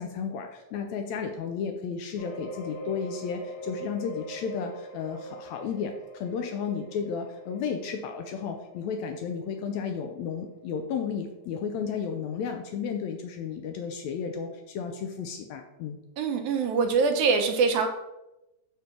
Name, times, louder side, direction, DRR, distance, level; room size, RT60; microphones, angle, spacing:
voice 1, 0.0-16.0, left 6 dB, 75° left, 4 dB, 1.7 m, -33 dB
sound 1, 2.1-11.6 12.1-12.2 12.6-12.7, right 1 dB, 50° left, 3.0 m, -43 dB
voice 2, 16.2-17.9, right 5 dB, 75° right, 5 dB, 2.0 m, -24 dB
6.8 x 3.3 x 5.8 m, 0.96 s
omnidirectional pair, 3.6 m